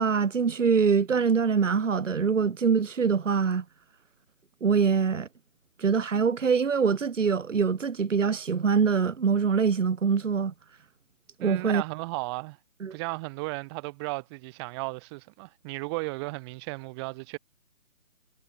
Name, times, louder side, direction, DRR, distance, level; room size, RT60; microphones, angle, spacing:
voice 1, 0.0-3.6 4.6-5.3 5.8-10.5 11.4-11.8 12.8-13.0, right 6 dB, 75° right, 1.0 m, -24 dB
voice 2, 11.4-12.6 12.9-17.4, right 26 dB, 20° right, 5.8 m, -35 dB
figure-of-eight pair, 145°, 38 cm